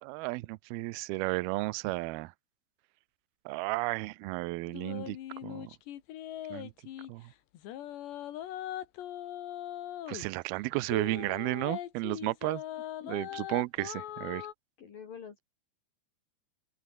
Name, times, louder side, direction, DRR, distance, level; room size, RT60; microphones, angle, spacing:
voice 1, 0.0-2.3 3.5-5.2 5.4-5.7 6.5-6.7 7.1-7.3 10.1-12.6 13.1-14.5, right 22 dB, 80° right, 2.2 m, -33 dB
sound 1, 4.7-7.1 7.5-10.3 10.9-14.5, left 12 dB, 75° left, 3.9 m, -40 dB
voice 2, 13.0-13.4 14.8-15.4, left 7 dB, 55° left, 5.0 m, -47 dB
open air
omnidirectional pair, 5.1 m